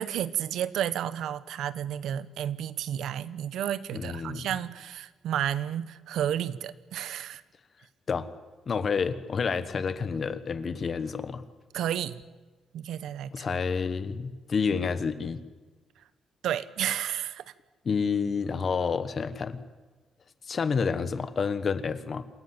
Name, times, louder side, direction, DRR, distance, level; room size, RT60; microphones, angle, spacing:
voice 1, 0.0-7.4 11.7-12.2 12.7-13.6 16.4-17.5, right 10 dB, 80° right, 15 dB, 1.0 m, -31 dB
voice 2, 3.9-4.4 8.1-8.3 8.7-11.4 13.3-15.4 17.8-19.6 20.5-22.2, left 5 dB, 35° left, 13 dB, 1.1 m, -29 dB
27.5 x 16.0 x 9.6 m, 1.3 s
cardioid pair, 175°, 0 cm